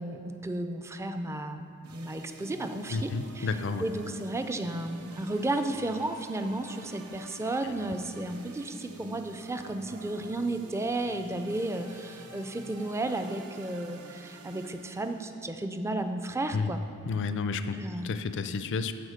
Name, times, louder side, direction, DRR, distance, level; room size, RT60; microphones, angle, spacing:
voice 1, 0.0-1.6 1.9-3.5 3.8-16.8 17.8-18.1, right 2 dB, 10° right, 7 dB, 0.3 m, -33 dB
sound 1, 1.8-15.3, right 2 dB, 85° right, 0.7 m, -49 dB
voice 2, 2.9-3.8 7.7-7.8 16.5-16.7 17.1-17.8 18.0-18.9, left 4 dB, 55° left, 10 dB, 0.4 m, -31 dB
13.0 x 4.4 x 5.0 m, 2.6 s
head